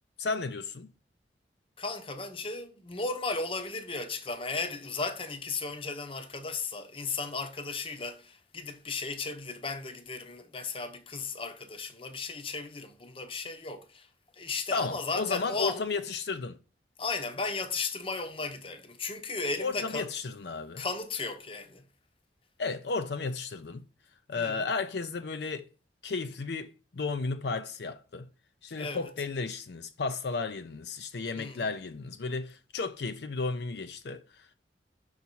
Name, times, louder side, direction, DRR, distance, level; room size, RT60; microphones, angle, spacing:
voice 1, 0.2-0.9 14.7-16.6 19.6-20.8 22.6-23.8 24.3-25.7 26.0-28.3 28.6-34.5, left 4 dB, 70° left, 0.5 m, -33 dB
voice 2, 1.8-14.1 14.3-15.8 17.0-20.1 20.8-21.8 24.4-24.5 28.8-29.1 31.4-31.6, left 4 dB, 30° left, 0.8 m, -35 dB
5.8 x 4.1 x 4.4 m
head